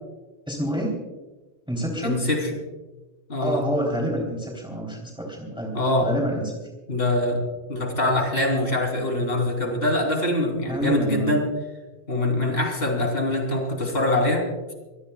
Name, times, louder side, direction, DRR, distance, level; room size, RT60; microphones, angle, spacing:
voice 1, 0.5-1.0 1.7-2.3 3.4-5.8 6.0-6.6 10.7-11.4, right 1 dB, 5° right, -2 dB, 3.4 m, -27 dB
voice 2, 2.0-2.5 3.3-3.7 5.7-6.1 6.9-7.4 7.7-11.4 12.1-14.5, left 1 dB, 60° left, 1 dB, 3.7 m, -23 dB
25.0 x 19.0 x 2.4 m, 1.1 s
omnidirectional pair, 1.2 m